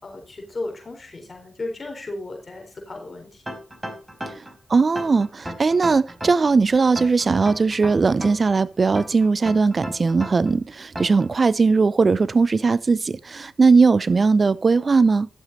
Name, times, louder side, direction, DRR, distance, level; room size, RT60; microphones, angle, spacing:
voice 1, 0.0-3.4, left 2 dB, 45° left, 4.2 m, -35 dB
sound 1, 3.5-4.5 5.0-6.5 7.0-8.5 9.0-10.5 11.0-11.3, equal, 15° right, 4.5 m, -34 dB
voice 2, 4.7-15.3, right 4 dB, 50° right, 0.6 m, -19 dB
12.0 x 7.4 x 4.2 m
supercardioid pair, 40°, 0 cm